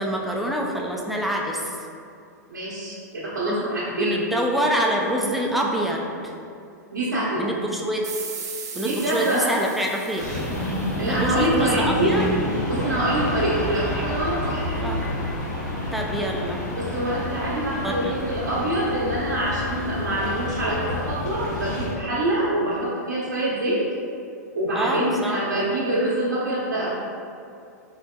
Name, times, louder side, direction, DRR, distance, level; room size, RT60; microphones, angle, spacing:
voice 1, 0.0-1.7 3.5-3.6 3.9-6.0 7.4-8.0 8.8-10.3 11.0-12.2 14.8-15.0 15.9-16.6 17.8-18.2 24.7-25.4, equal, ahead, -1 dB, 0.4 m, -26 dB
voice 2, 2.5-4.2 6.9-7.5 8.7-9.5 11.0-12.2 12.7-15.0 16.7-23.8 24.5-26.9, right 1 dB, 90° right, -9 dB, 1.0 m, -25 dB
sound 1, 8.0-11.4, right 5 dB, 70° right, 0.7 m, -38 dB
sound 2, 10.2-21.9, left 1 dB, 80° left, 1.1 m, -29 dB
4.1 x 3.4 x 2.3 m, 2.5 s
hypercardioid pair, 115°, 10 cm